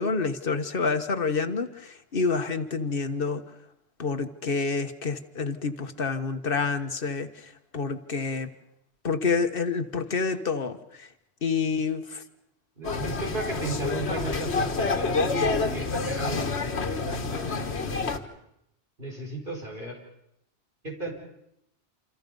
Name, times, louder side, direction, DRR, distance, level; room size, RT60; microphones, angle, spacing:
voice 1, 0.0-3.4 4.0-7.3 7.7-8.5 9.0-10.8 11.4-12.2, left 4 dB, 55° left, 8 dB, 1.5 m, -28 dB
sound 1, 12.8-18.2, left 4 dB, 75° left, 1.8 m, -28 dB
voice 2, 12.8-18.3 19.0-20.0 20.8-21.1, right 2 dB, 55° right, 1 dB, 5.6 m, -35 dB
28.0 x 27.5 x 5.4 m, 0.78 s
omnidirectional pair, 1.1 m